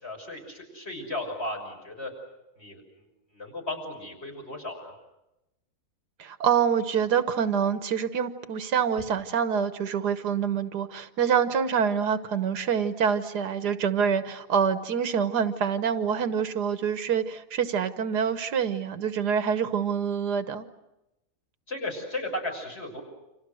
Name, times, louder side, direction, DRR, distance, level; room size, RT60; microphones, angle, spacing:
voice 1, 0.0-2.1 2.6-4.9 21.7-23.0, left 1 dB, 40° left, 1 dB, 6.5 m, -35 dB
voice 2, 6.2-20.7, right 7 dB, 85° right, 10 dB, 1.7 m, -26 dB
29.0 x 26.5 x 6.4 m, 0.92 s
omnidirectional pair, 1.7 m